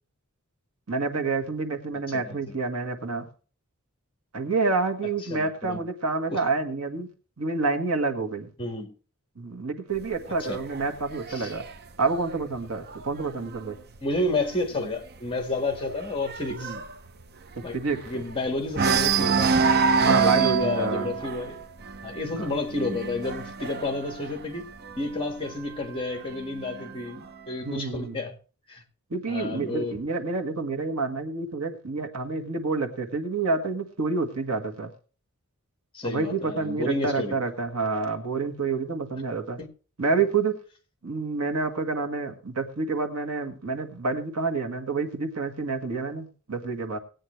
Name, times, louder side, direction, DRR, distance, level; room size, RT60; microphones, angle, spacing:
voice 1, 0.9-3.3 4.3-7.1 7.4-8.5 9.3-11.7 12.0-13.8 16.5-16.8 17.5-18.2 20.0-21.1 22.3-22.5 27.6-28.2 29.1-34.9 36.0-39.6 40.0-40.6 41.0-47.0, right 4 dB, 80° right, 1.7 m, -28 dB
voice 2, 2.1-2.6 5.3-5.8 6.3-6.4 8.6-8.9 10.5-10.6 11.3-11.5 14.0-16.7 17.6-17.7 18.1-19.5 20.0-21.6 22.0-24.7 25.0-28.3 28.7-28.8 29.3-30.0 35.9-37.4 39.6-39.7, left 2 dB, 25° left, 1.7 m, -30 dB
sound 1, 10.0-13.6 14.0-14.3 14.6-14.7 15.1-18.3 18.7-25.2 26.1-27.1, right 5 dB, 45° right, 0.8 m, -27 dB
18.5 x 8.7 x 3.2 m
head